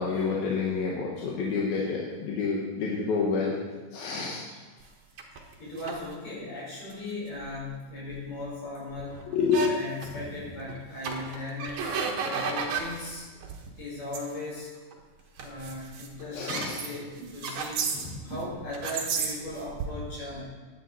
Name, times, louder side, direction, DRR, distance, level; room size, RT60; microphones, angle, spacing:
voice 1, 0.0-3.5 3.9-4.4 9.3-9.7 16.3-16.8 17.9-18.0, left 5 dB, 90° left, -4 dB, 3.3 m, -28 dB
sound 1, 5.2-6.0 6.9-7.0 7.4-7.6 8.1-8.2 8.4-8.5 8.9-9.7 10.0-10.2 10.6-10.8 11.0-13.1 13.4-13.7 14.1-14.2 14.8-15.0 15.4-18.4 18.7-19.9, right 5 dB, 60° right, 2.5 m, -33 dB
voice 2, 5.6-9.2 9.7-11.9 12.2-13.3 13.7-14.7 15.4-17.8 18.2-20.5, left 2 dB, 65° left, -6 dB, 7.0 m, -38 dB
16.0 x 10.5 x 4.2 m, 1.3 s
omnidirectional pair, 4.1 m